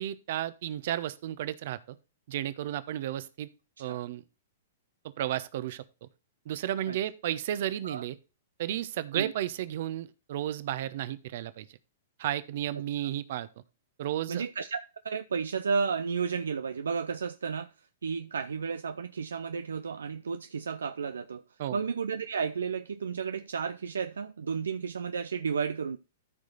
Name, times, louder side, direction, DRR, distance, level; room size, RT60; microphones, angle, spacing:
voice 1, 0.0-2.0 2.3-3.5 3.8-4.2 5.2-6.1 6.5-8.2 8.6-11.6 12.2-13.5 14.0-14.4 21.6-21.8, right 12 dB, 55° right, 1.0 m, -33 dB
voice 2, 14.3-14.8 15.0-17.7 18.0-21.4 21.7-26.0, right 5 dB, 70° right, 0.5 m, -32 dB
13.5 x 4.9 x 4.0 m
figure-of-eight pair, 110°, 0 cm